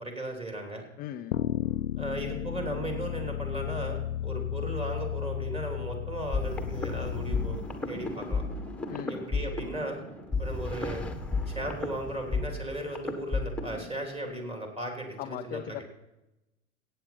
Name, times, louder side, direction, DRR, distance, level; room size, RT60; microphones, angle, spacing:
voice 1, 0.0-0.8 2.0-8.4 9.1-10.0 10.4-11.0 11.5-15.8, right 1 dB, 15° right, 2 dB, 3.2 m, -36 dB
voice 2, 1.0-1.3 8.9-9.2 15.2-15.8, left 12 dB, 25° left, 8 dB, 0.4 m, -38 dB
sound 1, 1.3-7.6, left 11 dB, 80° left, 0.5 m, -33 dB
sound 2, 6.3-13.9, left 3 dB, 5° left, 1.5 m, -33 dB
15.5 x 9.0 x 5.8 m, 0.97 s
figure-of-eight pair, 95°, 41 cm